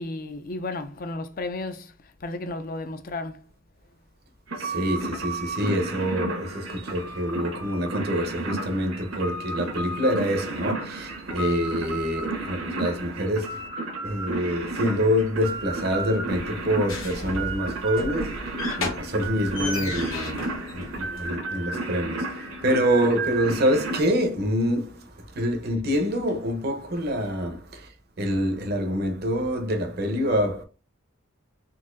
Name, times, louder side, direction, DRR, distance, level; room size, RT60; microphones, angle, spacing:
voice 1, 0.0-1.9 2.2-3.4, left 2 dB, 45° left, 0.4 m, -33 dB
sound 1, 4.5-24.0, right 3 dB, 80° right, 1.2 m, -33 dB
voice 2, 4.6-13.7 14.0-27.9 28.2-30.6, equal, 50° right, 0.7 m, -26 dB
sound 2, 16.3-21.4, left 2 dB, 75° left, 1.0 m, -35 dB
4.0 x 2.6 x 2.5 m
head